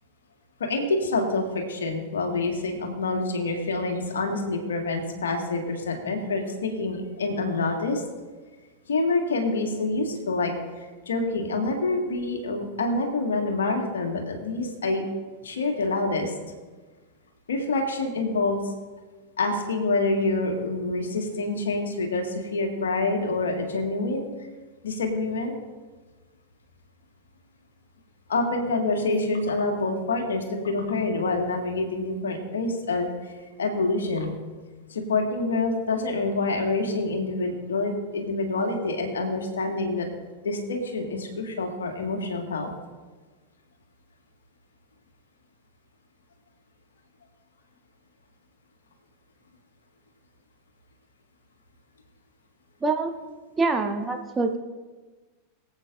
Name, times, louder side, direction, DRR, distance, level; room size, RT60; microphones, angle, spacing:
voice 1, 0.6-8.0 8.9-15.1 15.4-16.3 17.5-18.7 19.4-24.3 24.8-25.5 28.3-33.3 33.6-34.3 34.9-40.1 40.4-42.7, left 3 dB, 65° left, 3 dB, 1.8 m, -27 dB
voice 2, 52.8-53.1 53.6-54.6, right 3 dB, 15° right, 5 dB, 0.8 m, -25 dB
23.0 x 8.1 x 2.6 m, 1.3 s
figure-of-eight pair, 90°, 0 cm